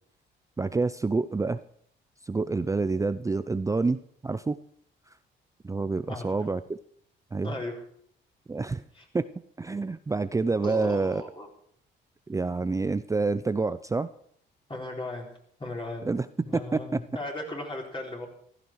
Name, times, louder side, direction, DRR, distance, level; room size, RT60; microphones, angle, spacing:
voice 1, 0.6-1.6 2.3-4.6 5.6-6.8 7.3-7.5 8.5-8.8 9.1-9.2 9.6-11.2 12.3-14.1 16.0-16.3 16.7-16.8, right 3 dB, 15° right, 12 dB, 0.5 m, -27 dB
voice 2, 7.4-7.8 8.9-9.0 10.6-11.5 14.7-15.3 15.6-16.1 16.4-18.3, left 2 dB, 25° left, 0 dB, 4.4 m, -36 dB
15.5 x 12.5 x 4.7 m, 0.64 s
cardioid pair, 90°, 20 cm